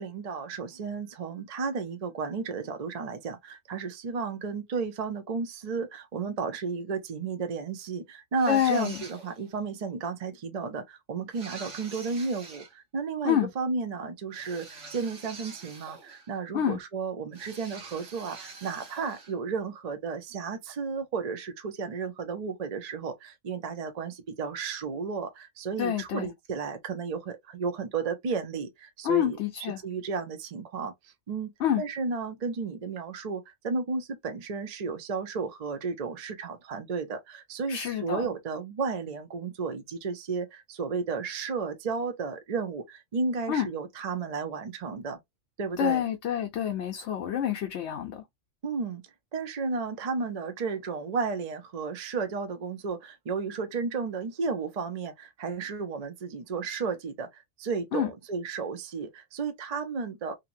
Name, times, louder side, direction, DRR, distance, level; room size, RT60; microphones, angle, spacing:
voice 1, 0.0-31.5 31.8-45.2 45.6-46.0 48.6-49.0 49.3-60.3, right 5 dB, 45° right, 0.5 m, -33 dB
sound 1, 8.3-9.5 11.3-12.7 14.3-16.4 17.3-19.4, right 4 dB, 70° right, 1.3 m, -46 dB
voice 2, 8.5-9.0 13.2-13.5 16.5-16.8 25.8-26.3 29.0-29.8 31.6-31.8 37.7-38.3 43.5-43.7 45.8-48.2 57.9-58.1, left 10 dB, 70° left, 0.9 m, -27 dB
2.8 x 2.6 x 2.4 m
omnidirectional pair, 1.3 m